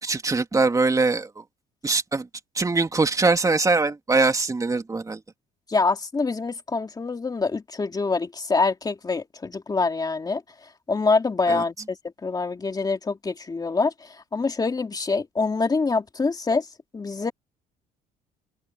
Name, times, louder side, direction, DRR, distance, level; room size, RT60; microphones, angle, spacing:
voice 1, 0.0-1.4 1.8-2.3 2.5-5.2 11.5-11.6, right 3 dB, 20° right, 2.8 m, -22 dB
voice 2, 5.7-10.4 10.9-12.0 12.2-16.7 16.9-17.3, left 4 dB, 25° left, 2.4 m, -25 dB
open air
cardioid pair, 110°, 17 cm